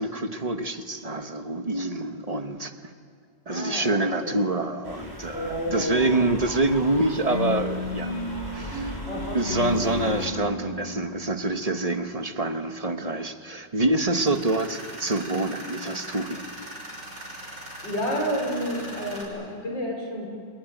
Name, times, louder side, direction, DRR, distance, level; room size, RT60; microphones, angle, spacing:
voice 1, 0.0-2.7 3.5-8.1 8.5-9.0 9.3-16.4, right 2 dB, 25° right, 7 dB, 1.0 m, -26 dB
voice 2, 3.5-4.4 5.3-6.1 9.0-9.4 17.4-20.3, equal, 75° left, 1 dB, 5.9 m, -31 dB
sound 1, 4.8-10.3, equal, 10° left, 5.3 m, -39 dB
sound 2, 7.3-12.4, left 2 dB, 35° left, 5.0 m, -33 dB
Tools, 14.1-19.2, right 1 dB, 70° right, 6.7 m, -40 dB
28.5 x 21.0 x 9.3 m, 2.3 s
omnidirectional pair, 2.0 m